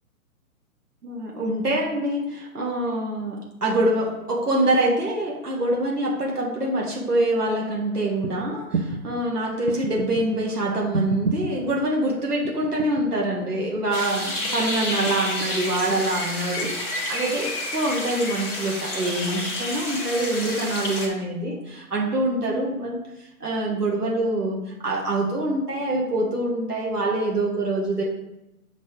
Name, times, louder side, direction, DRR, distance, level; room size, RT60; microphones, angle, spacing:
voice 1, 1.0-23.0 23.4-28.0, right 1 dB, 85° right, -3 dB, 1.7 m, -25 dB
sound 1, 8.2-8.3 8.7-9.0 9.7-10.2 10.9-11.5 12.4-13.0 13.4-14.0 15.1-15.7 16.6-16.7, right 5 dB, 50° right, 0.9 m, -30 dB
sound 2, 13.9-21.1, left 1 dB, 5° left, 0.5 m, -30 dB
6.5 x 4.1 x 5.1 m, 0.91 s
figure-of-eight pair, 130°, 45 cm